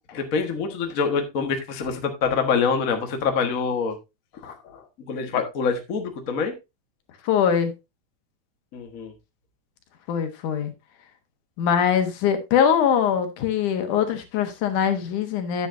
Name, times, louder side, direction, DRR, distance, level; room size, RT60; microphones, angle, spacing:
voice 1, 0.1-4.0 4.4-6.5 8.7-9.1, left 5 dB, 50° left, 1.0 m, -26 dB
voice 2, 7.2-7.7 10.1-10.7 11.6-15.7, left 8 dB, 75° left, 2.7 m, -22 dB
10.0 x 8.5 x 2.6 m
omnidirectional pair, 3.6 m